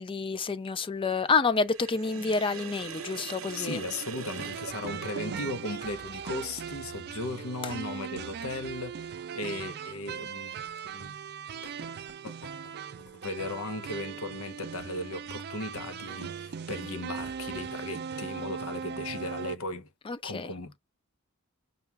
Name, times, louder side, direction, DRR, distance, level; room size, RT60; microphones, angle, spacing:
voice 1, 0.0-3.8 7.6-7.7 20.1-20.5, left 4 dB, 25° left, 0.4 m, -28 dB
Sink (filling or washing), 1.7-5.6, right 6 dB, 70° right, 0.8 m, -42 dB
voice 2, 3.5-10.5 10.9-11.1 11.6-11.7 12.2-12.5 13.1-19.9 20.2-20.8, left 2 dB, 90° left, 0.8 m, -37 dB
sound 1, 4.3-19.6, right 7 dB, 50° right, 0.4 m, -39 dB
5.7 x 2.4 x 3.3 m
head